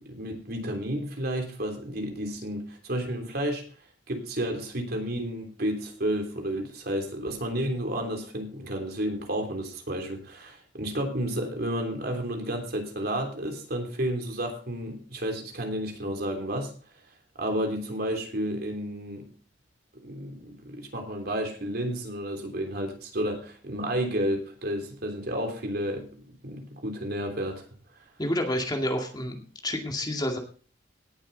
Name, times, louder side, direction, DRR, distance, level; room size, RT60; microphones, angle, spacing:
voice 1, 0.0-3.6 4.1-16.7 17.4-19.3 20.0-27.6, right 1 dB, 60° right, 3 dB, 3.3 m, -31 dB
voice 2, 28.2-30.4, left 1 dB, 25° left, 3 dB, 2.3 m, -29 dB
18.0 x 7.7 x 4.1 m, 0.39 s
head